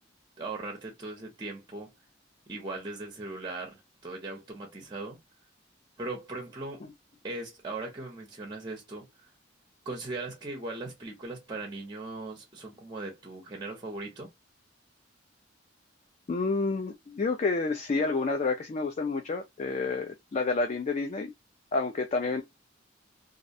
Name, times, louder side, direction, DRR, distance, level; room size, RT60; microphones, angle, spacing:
voice 1, 0.4-1.9 2.5-5.2 6.0-6.8 7.2-9.1 9.9-14.3, right 2 dB, 20° right, 0.6 m, -39 dB
voice 2, 16.3-21.3 21.7-22.4, left 3 dB, 35° left, 0.3 m, -29 dB
2.4 x 2.1 x 2.6 m
head